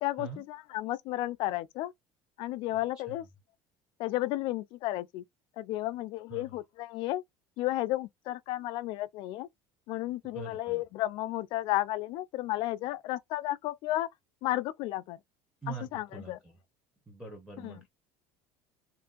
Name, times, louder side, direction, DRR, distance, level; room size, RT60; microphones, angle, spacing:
voice 1, 0.0-1.9 2.4-3.2 4.0-5.2 5.6-7.2 7.6-9.5 9.9-14.1 14.4-15.2 15.7-16.4 17.6-17.8, left 16 dB, 55° left, 0.3 m, -33 dB
voice 2, 10.2-10.8 15.6-16.5 17.1-17.9, right 5 dB, 5° right, 0.8 m, -44 dB
3.0 x 2.5 x 2.3 m
cardioid pair, 150°, 10 cm